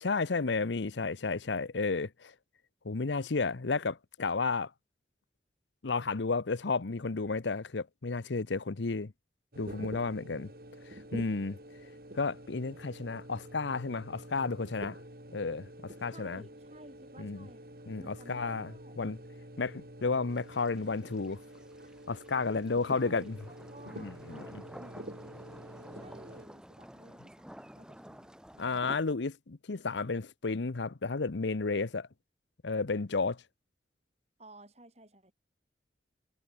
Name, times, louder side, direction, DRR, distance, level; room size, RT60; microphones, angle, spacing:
voice 1, 0.0-2.3 2.8-4.7 5.8-9.1 9.6-10.5 11.1-11.6 12.1-15.0 15.3-16.4 17.2-17.5 17.9-18.7 19.0-19.2 19.6-21.4 22.1-23.3 24.0-24.6 28.6-32.1 32.6-33.4, left 4 dB, 90° left, 0.8 m, -32 dB
sound 1, 9.5-26.5, right 1 dB, 55° right, 4.8 m, -48 dB
voice 2, 16.1-19.0 22.9-25.4 25.9-28.7 34.4-35.3, right 1 dB, 35° right, 6.1 m, -54 dB
sound 2, 20.3-29.0, equal, 5° right, 1.5 m, -52 dB
head